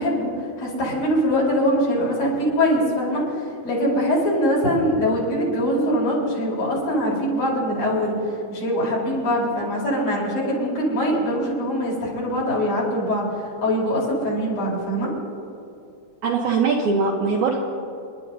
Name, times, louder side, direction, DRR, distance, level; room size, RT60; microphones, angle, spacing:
voice 1, 0.0-15.1, equal, 55° left, -5 dB, 5.2 m, -23 dB
voice 2, 16.2-17.6, right 4 dB, 70° right, -1 dB, 2.0 m, -21 dB
29.0 x 11.5 x 2.7 m, 2.7 s
omnidirectional pair, 4.3 m